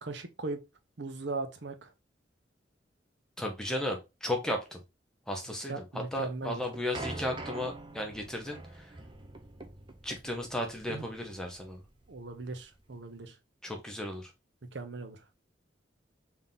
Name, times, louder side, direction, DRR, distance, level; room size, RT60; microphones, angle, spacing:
voice 1, 0.0-0.6 1.0-1.9 5.7-6.6 10.9-11.1 12.1-13.3 14.7-15.2, right 3 dB, 70° right, 0.7 m, -38 dB
voice 2, 3.4-4.8 5.3-8.9 10.0-11.8 13.6-14.3, left 1 dB, 5° left, 0.9 m, -35 dB
sound 1, 6.3-13.2, right 2 dB, 25° right, 0.6 m, -45 dB
3.6 x 2.8 x 3.7 m
head